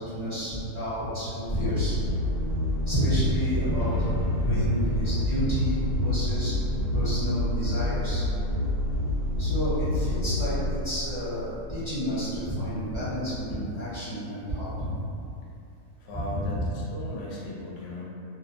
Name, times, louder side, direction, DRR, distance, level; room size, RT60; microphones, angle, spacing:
voice 1, 0.0-2.0 2.8-6.5 6.9-8.2 9.4-14.9 16.1-16.6, equal, 30° left, -14 dB, 0.6 m, -30 dB
sound 1, 1.5-11.7, left 1 dB, 80° right, 1.1 m, -28 dB
voice 2, 16.0-18.0, left 1 dB, 70° left, -5 dB, 1.0 m, -37 dB
2.7 x 2.1 x 2.4 m, 2.5 s
omnidirectional pair, 1.6 m